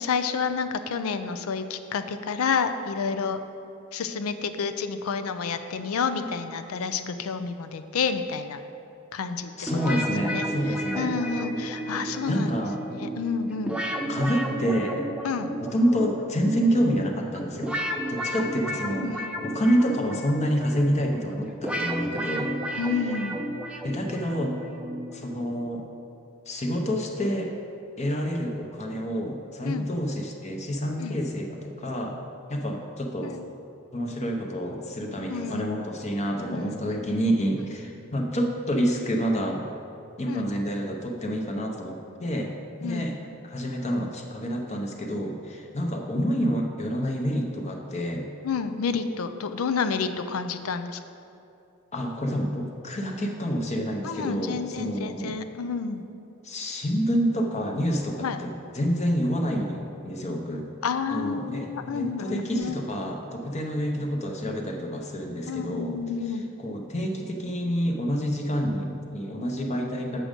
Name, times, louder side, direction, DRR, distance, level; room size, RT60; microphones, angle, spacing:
voice 1, 0.0-3.4 3.9-8.6 9.1-9.5 9.9-10.0 10.3-10.4 11.0-12.5 12.8-13.8 15.2-15.5 18.4-18.5 19.0-19.3 22.8-23.4 29.6-29.9 31.0-31.2 33.2-33.4 35.3-35.7 36.5-36.8 40.3-40.5 42.8-43.1 48.4-51.0 54.0-56.0 58.2-58.4 60.8-62.8 65.5-66.4, left 5 dB, 85° left, 9 dB, 0.5 m, -29 dB
voice 2, 9.6-11.2 12.2-12.8 14.1-15.1 15.6-17.8 18.1-19.1 19.4-22.6 22.9-23.2 23.8-24.6 25.1-25.8 26.5-27.5 28.0-32.2 32.5-33.4 33.9-39.6 40.2-42.5 42.8-43.1 43.4-48.3 51.9-55.3 56.4-60.7 61.1-66.0 66.3-70.2, equal, 35° left, 1 dB, 0.7 m, -28 dB
sound 1, 9.7-25.6, right 1 dB, 5° right, 0.5 m, -33 dB
7.7 x 6.2 x 5.1 m, 2.7 s
head